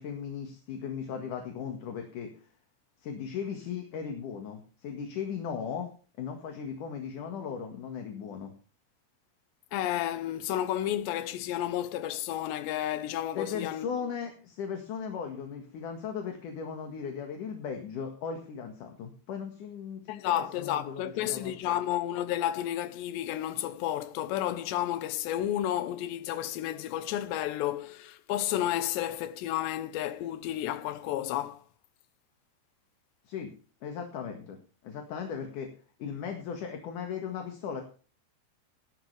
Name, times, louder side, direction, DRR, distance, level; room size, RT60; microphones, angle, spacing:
voice 1, 0.0-2.3 3.0-5.9 6.2-8.5 13.3-21.8 33.3-33.5 33.8-34.6 34.8-35.7 36.0-37.8, left 7 dB, 55° left, 2.8 m, -37 dB
voice 2, 9.7-13.9 20.1-31.6, left 12 dB, 80° left, 3.0 m, -31 dB
18.0 x 12.0 x 3.4 m
omnidirectional pair, 5.3 m